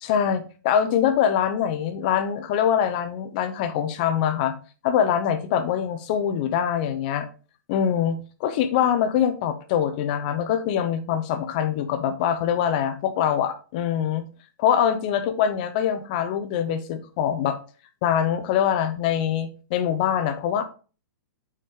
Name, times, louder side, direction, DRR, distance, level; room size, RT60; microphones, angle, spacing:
voice 1, 0.0-4.5 4.8-7.3 7.7-14.3 14.6-17.6 18.0-20.6, left 9 dB, 25° left, 0.7 m, -24 dB
6.8 x 4.9 x 3.7 m
hypercardioid pair, 175°, 10 cm